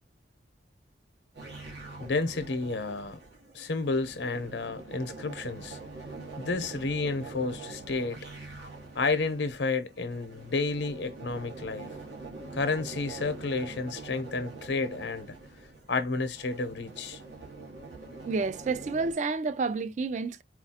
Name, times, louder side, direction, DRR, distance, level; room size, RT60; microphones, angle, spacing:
sound 1, 1.3-19.1, right 3 dB, 85° right, 1.4 m, -44 dB
voice 1, 2.0-3.2 3.5-5.8 6.4-8.2 8.9-12.0 12.5-15.3 15.9-17.2, left 3 dB, 85° left, 0.7 m, -31 dB
voice 2, 18.2-20.4, right 4 dB, 40° right, 0.3 m, -30 dB
4.3 x 2.3 x 2.7 m
head